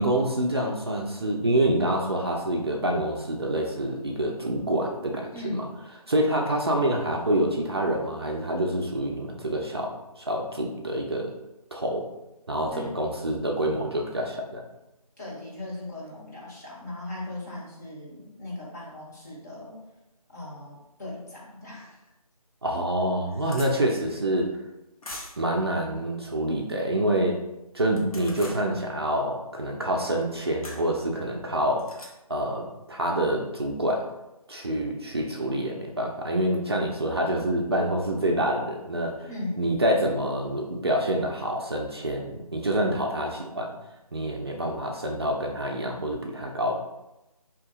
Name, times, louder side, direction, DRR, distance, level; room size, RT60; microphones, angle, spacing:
voice 1, 0.0-5.3 5.5-5.6 6.1-11.3 11.7-12.1 12.5-14.6 22.6-24.5 25.4-27.4 27.7-31.9 32.3-34.1 34.5-39.3 39.6-43.7 44.1-46.7, right 1 dB, 40° right, 0 dB, 0.4 m, -27 dB
voice 2, 5.3-5.8 12.7-12.9 15.2-19.8 20.3-22.0 39.3-39.8, left 2 dB, 25° left, -6 dB, 0.9 m, -38 dB
sound 1, 22.1-22.2 22.7-22.8 23.0-23.7 25.0-25.5 27.9-28.6 30.6-30.8 31.8-32.1, left 1 dB, 70° left, 0.9 m, -41 dB
2.9 x 2.8 x 3.7 m, 0.95 s
figure-of-eight pair, 160°, 19 cm